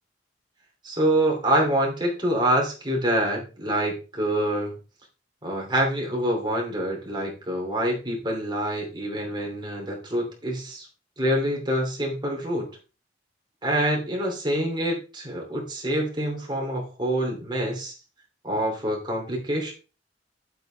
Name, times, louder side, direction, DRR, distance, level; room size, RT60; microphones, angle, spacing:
voice 1, 0.8-4.7 5.4-10.9 11.2-12.7 13.6-18.0 18.4-19.7, right 1 dB, 25° right, -1 dB, 2.9 m, -26 dB
9.7 x 7.8 x 3.4 m, 0.33 s
head